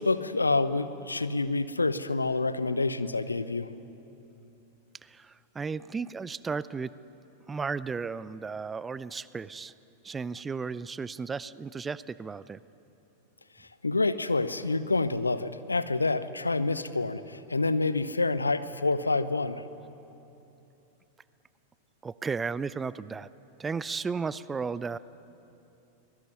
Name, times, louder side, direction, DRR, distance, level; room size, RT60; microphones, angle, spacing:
voice 1, 0.0-3.7 13.6-19.6, left 3 dB, 80° left, 14 dB, 0.8 m, -28 dB
voice 2, 5.0-6.9 7.5-9.7 10.0-12.6 22.0-23.3 23.6-25.0, right 5 dB, 15° right, 18 dB, 0.5 m, -34 dB
24.0 x 19.5 x 9.7 m, 2.9 s
figure-of-eight pair, 90°, 0 cm